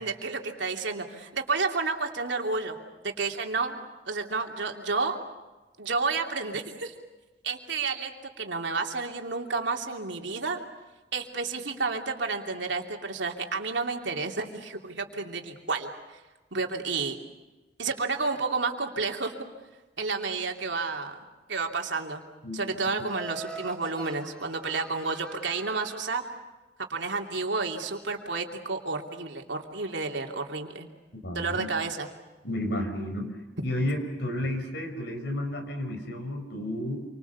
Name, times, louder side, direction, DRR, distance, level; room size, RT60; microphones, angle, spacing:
voice 1, 0.0-2.8 3.0-5.2 5.8-6.9 7.4-10.6 11.1-16.2 16.5-17.2 17.8-19.4 20.0-21.2 21.5-22.2 22.5-26.2 26.8-30.9 31.3-32.1, right 4 dB, 90° right, 3 dB, 3.0 m, -31 dB
Laughter, 23.1-26.3, right 2 dB, 5° left, 3.2 m, -44 dB
voice 2, 31.2-31.7 32.4-33.4 33.6-37.1, left 1 dB, 70° left, 5 dB, 4.8 m, -31 dB
28.5 x 25.0 x 7.1 m, 1.2 s
head